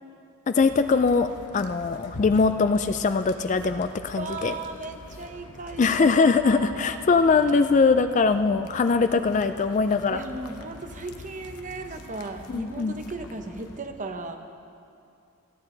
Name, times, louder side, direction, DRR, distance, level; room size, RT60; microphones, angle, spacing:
voice 1, 0.5-1.3 1.5-4.5 5.8-10.2 12.5-12.9, left 4 dB, 35° left, 10 dB, 0.3 m, -22 dB
sound 1, 0.6-13.8, left 2 dB, 85° left, 1.0 m, -45 dB
voice 2, 4.2-7.0 10.1-14.4, right 3 dB, 35° right, 6 dB, 0.9 m, -36 dB
26.5 x 9.5 x 3.9 m, 2.6 s
head